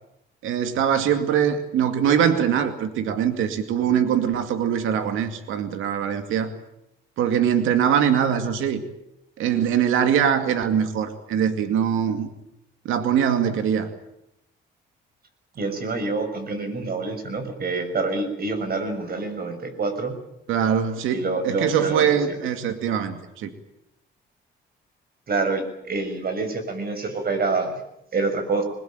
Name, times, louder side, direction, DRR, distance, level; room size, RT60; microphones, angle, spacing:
voice 1, 0.4-6.5 7.2-8.8 9.4-12.3 12.8-13.9 20.5-23.5, right 8 dB, 85° right, 8 dB, 2.4 m, -22 dB
voice 2, 15.5-20.1 21.1-22.2 25.3-27.8 28.1-28.6, right 3 dB, 50° right, 8 dB, 6.5 m, -26 dB
22.0 x 21.0 x 9.0 m, 0.82 s
cardioid pair, 90°, 20 cm